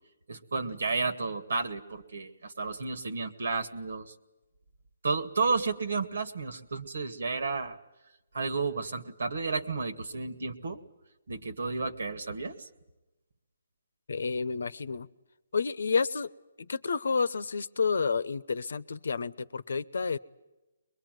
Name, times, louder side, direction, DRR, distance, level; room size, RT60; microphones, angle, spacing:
voice 1, 0.3-4.1 5.0-7.8 8.3-10.8 11.3-12.7, right 4 dB, 75° right, 12 dB, 2.0 m, -32 dB
voice 2, 14.1-15.1 15.5-16.3 16.6-20.2, left 5 dB, 75° left, 18 dB, 0.9 m, -30 dB
22.5 x 22.5 x 9.3 m, 1.0 s
hypercardioid pair, 155°, 0 cm